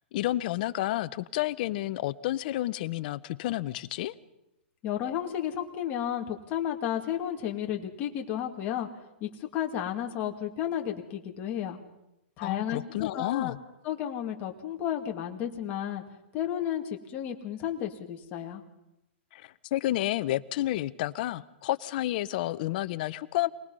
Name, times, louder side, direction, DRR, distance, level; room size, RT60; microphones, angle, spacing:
voice 1, 0.1-4.1 12.4-13.6 19.3-23.5, left 15 dB, 45° left, 0.8 m, -30 dB
voice 2, 4.8-8.9 9.2-11.8 12.4-13.5 13.8-16.0 16.3-18.6, left 10 dB, 25° left, 2.1 m, -32 dB
27.5 x 19.5 x 5.5 m
hypercardioid pair, 155°, 7 cm